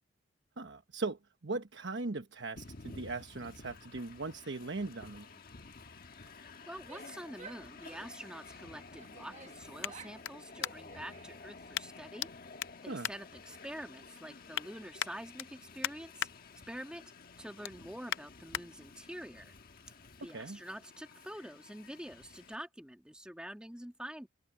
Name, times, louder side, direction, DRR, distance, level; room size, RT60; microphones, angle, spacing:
voice 1, 0.6-5.3 12.9-13.1 20.3-20.6, right 3 dB, 75° right, 1.1 m, -39 dB
Train, 2.6-22.6, left 4 dB, 50° left, 1.3 m, -52 dB
voice 2, 6.4-12.3 12.8-16.3 16.7-17.0 17.4-19.5 20.2-24.3, equal, 5° right, 1.8 m, -46 dB
Female speech woman speaking / Yell, 6.7-8.3 9.0-10.2 10.5-11.5, right 5 dB, 40° right, 1.3 m, -54 dB
sound 1, 9.8-11.1 11.7-12.3 12.6-13.9 14.3-14.7 15.0-16.3 16.7-17.0 17.3-18.6 19.2-19.3, left 10 dB, 90° left, 0.5 m, -40 dB
open air
head